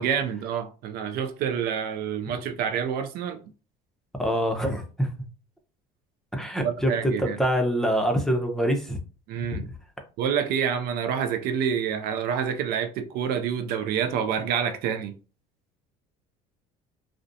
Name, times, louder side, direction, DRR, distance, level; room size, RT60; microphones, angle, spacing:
voice 1, 0.0-3.4 6.6-7.4 9.3-9.7 10.2-15.1, right 8 dB, 60° right, 0.4 m, -27 dB
voice 2, 4.2-5.1 6.3-9.0 9.5-9.7, equal, 5° left, 0.6 m, -25 dB
2.4 x 2.1 x 2.6 m
supercardioid pair, 90°, 18 cm